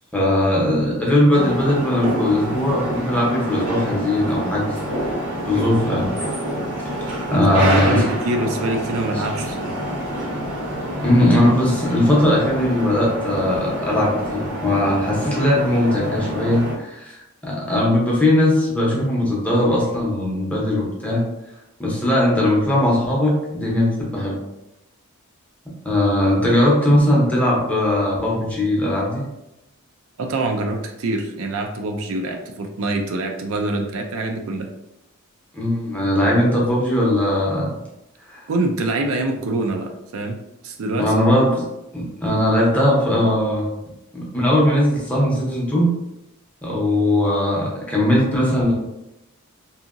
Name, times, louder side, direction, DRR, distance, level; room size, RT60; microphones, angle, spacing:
voice 1, 0.1-4.8 5.1-5.2 5.5-6.1 6.9-7.0 7.3-8.0 11.0-21.2 21.8-24.4 25.8-29.2 35.5-37.7 38.3-38.4 41.0-41.6 41.9-43.6 44.1-45.9 46.6-48.7, left 1 dB, 5° left, -5 dB, 0.7 m, -19 dB
sound 1, 1.3-16.7, equal, 80° right, 1.0 m, -27 dB
voice 2, 7.3-9.8 30.2-34.7 38.5-40.4 40.6-41.2, right 2 dB, 65° right, 3 dB, 0.4 m, -25 dB
2.7 x 2.7 x 2.5 m, 0.91 s
head